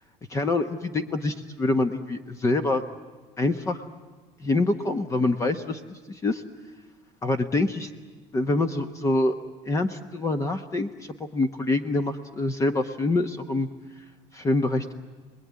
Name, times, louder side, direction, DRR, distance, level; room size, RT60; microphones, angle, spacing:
voice 1, 0.3-2.8 3.4-3.8 4.4-6.4 7.2-7.9 8.3-9.4 9.7-13.7 14.3-14.9, left 2 dB, 20° left, 9 dB, 1.0 m, -25 dB
30.0 x 20.5 x 9.6 m, 1.3 s
cardioid pair, 140°, 14 cm